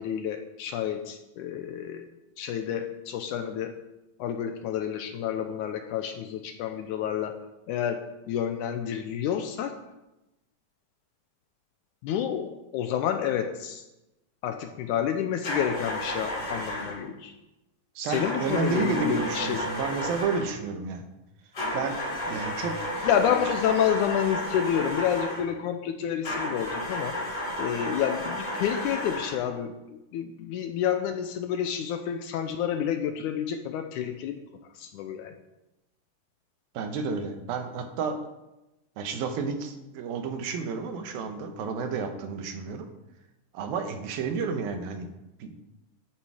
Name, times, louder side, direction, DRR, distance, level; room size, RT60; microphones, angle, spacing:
voice 1, 0.0-2.1 2.4-3.8 4.2-7.4 7.7-9.7 12.0-13.8 14.4-17.3 18.0-19.7 23.0-27.2 27.6-29.7 30.1-34.4 34.8-35.3, left 9 dB, 75° left, 6 dB, 1.9 m, -29 dB
sound 1, 15.4-17.0 18.1-20.6 21.5-25.5 26.2-29.5, left 1 dB, 30° left, 4.7 m, -32 dB
voice 2, 18.0-21.1 21.7-22.0 22.3-23.4 36.7-38.2 39.0-42.9 43.5-45.1 45.4-45.5, right 5 dB, 85° right, 6 dB, 3.0 m, -31 dB
11.5 x 8.8 x 4.9 m, 0.97 s
omnidirectional pair, 4.0 m